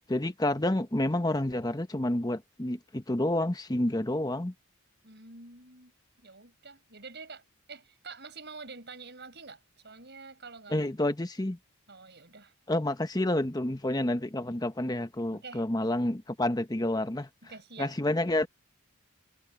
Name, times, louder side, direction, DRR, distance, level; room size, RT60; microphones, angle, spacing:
voice 1, 0.1-4.5 10.7-11.6 12.7-17.3 17.8-18.5, left 1 dB, 15° left, 0.9 m, -29 dB
voice 2, 5.0-5.9 6.2-7.4 7.7-10.9 11.9-12.5 15.3-15.6 17.4-17.9, right 4 dB, 50° right, 7.3 m, -47 dB
head